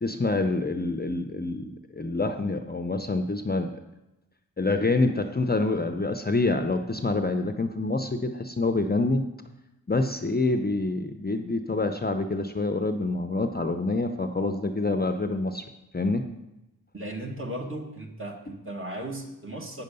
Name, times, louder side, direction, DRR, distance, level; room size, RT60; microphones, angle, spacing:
voice 1, 0.0-1.6 1.9-3.7 4.6-9.2 9.9-15.6 15.9-16.3, left 2 dB, 25° left, 7 dB, 0.6 m, -26 dB
voice 2, 16.9-19.8, right 1 dB, 35° right, 1 dB, 1.8 m, -36 dB
8.6 x 6.6 x 5.4 m, 0.93 s
cardioid pair, 45°, 36 cm